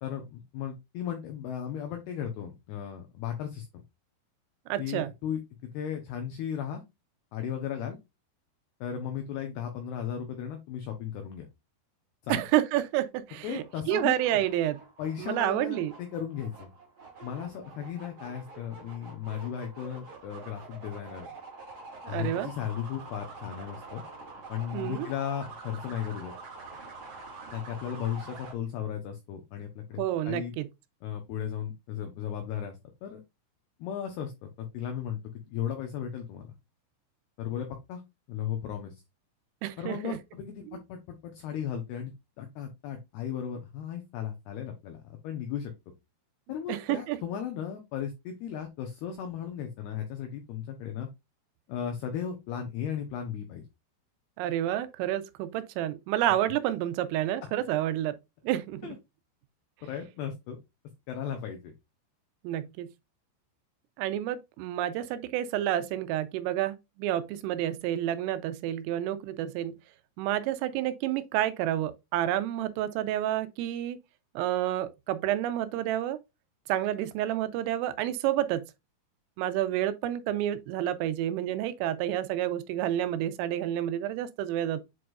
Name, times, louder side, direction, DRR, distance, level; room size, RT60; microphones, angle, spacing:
voice 1, 0.0-3.7 4.8-5.4 5.7-6.8 7.3-8.0 8.8-11.5 12.2-12.4 13.4-14.2 15.0-16.7 17.2-21.3 22.1-24.0 24.5-26.3 27.5-30.5 31.0-33.2 33.8-35.2 35.5-36.5 37.4-38.0 38.3-38.9 39.8-45.7 46.5-51.1 51.7-53.6 58.8-59.0 59.8-60.6 61.1-61.7, left 9 dB, 85° left, 2.3 m, -36 dB
voice 2, 4.7-5.1 12.3-14.8 15.2-15.9 22.1-22.5 24.7-25.1 30.0-30.7 39.6-40.2 40.7-40.8 46.7-47.2 54.4-58.2 58.4-58.9 62.4-62.9 64.0-69.8 70.2-74.0 74.4-76.2 76.7-78.6 79.4-84.8, right 12 dB, 85° right, 3.3 m, -29 dB
sound 1, 13.6-28.5, right 3 dB, 45° right, 2.3 m, -46 dB
8.2 x 4.6 x 2.4 m
omnidirectional pair, 5.8 m